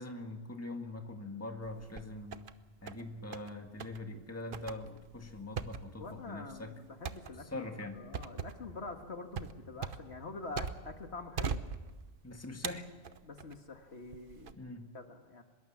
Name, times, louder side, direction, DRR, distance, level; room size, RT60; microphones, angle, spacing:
voice 1, 0.0-2.5 2.8-6.7 7.5-8.0 12.2-12.9 14.6-14.9, left 2 dB, 10° left, 4 dB, 1.9 m, -43 dB
sound 1, 1.6-2.5 2.9-3.5 3.8-4.0 4.5-11.0 11.4-12.2 12.6-13.6 14.1-14.5, right 6 dB, 50° right, 1.0 m, -41 dB
voice 2, 6.0-7.6 7.9-11.6 13.2-14.6 14.9-15.4, left 3 dB, 65° left, 5 dB, 2.1 m, -45 dB
24.0 x 21.5 x 7.3 m, 1.3 s
omnidirectional pair, 1.2 m